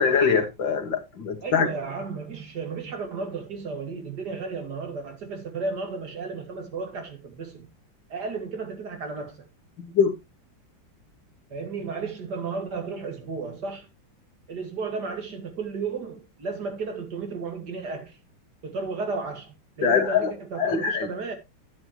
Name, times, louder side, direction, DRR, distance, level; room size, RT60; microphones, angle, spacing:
voice 1, 0.0-1.7 9.8-10.1 19.8-20.3 20.6-21.1, left 6 dB, 80° left, 2.5 m, -23 dB
voice 2, 1.4-7.7 8.1-9.5 11.5-13.9 14.5-18.2 18.6-21.3, right 4 dB, 60° right, 2.5 m, -33 dB
10.5 x 10.0 x 3.0 m
omnidirectional pair, 2.0 m